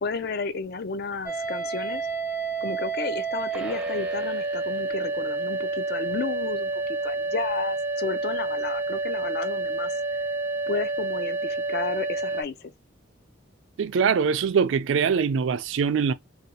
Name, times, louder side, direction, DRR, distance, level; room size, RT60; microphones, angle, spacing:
voice 1, 0.0-2.0 2.6-10.0 10.7-12.7, left 4 dB, 50° left, 0.4 m, -32 dB
sound 1, 1.3-12.4, right 3 dB, 10° right, 0.5 m, -29 dB
voice 2, 13.8-16.1, right 6 dB, 70° right, 0.3 m, -23 dB
2.6 x 2.2 x 4.0 m
head